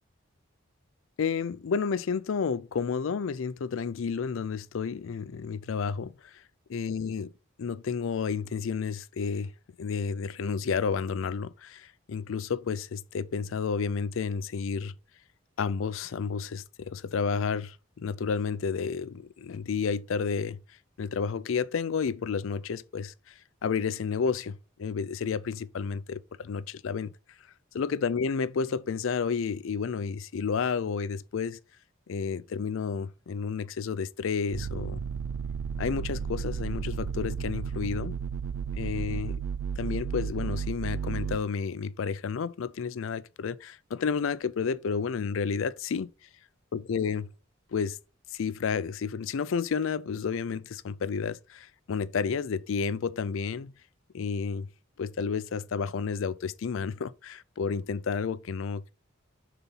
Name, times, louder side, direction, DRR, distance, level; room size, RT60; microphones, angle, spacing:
voice 1, 1.2-6.4 6.7-7.3 7.6-9.5 9.8-14.9 15.6-20.6 21.0-23.3 23.6-27.1 27.7-31.6 32.1-35.0 35.8-38.1 38.7-39.4 39.8-46.1 46.7-47.3 47.7-48.0 48.3-53.7 54.1-54.7 55.0-58.9, left 5 dB, 75° left, 0.4 m, -31 dB
sound 1, 34.5-41.4, right 6 dB, 80° right, 0.4 m, -33 dB
5.4 x 4.1 x 5.6 m
head